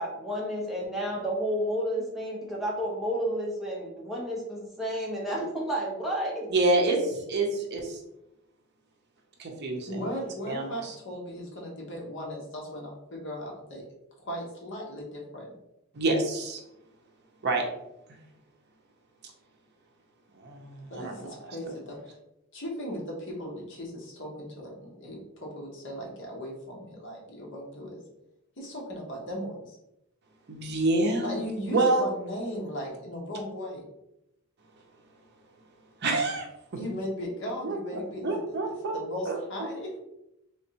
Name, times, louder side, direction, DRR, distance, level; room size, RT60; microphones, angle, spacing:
voice 1, 0.0-6.5, equal, ahead, -4 dB, 0.7 m, -31 dB
voice 2, 6.5-8.0 9.4-10.1 10.5-10.9 15.9-16.6 17.4-17.6 20.4-21.3 30.5-32.1 36.0-36.5 37.6-39.4, right 2 dB, 50° right, 2 dB, 0.6 m, -27 dB
voice 3, 9.9-13.8 14.2-15.5 20.9-22.2 22.5-28.0 28.6-29.8 31.2-33.8 36.8-39.9, equal, 55° left, -1 dB, 1.0 m, -37 dB
3.4 x 3.1 x 2.8 m, 0.87 s
head